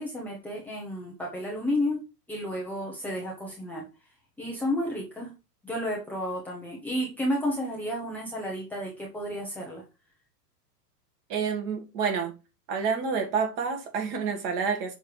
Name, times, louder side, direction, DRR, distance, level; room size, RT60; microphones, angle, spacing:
voice 1, 0.0-2.0 2.3-3.9 4.4-5.3 5.6-9.8, left 1 dB, 5° left, 0.7 m, -31 dB
voice 2, 11.3-12.3 12.7-15.0, right 6 dB, 35° right, 1.9 m, -28 dB
6.6 x 3.2 x 4.9 m
hypercardioid pair, 145°, 49 cm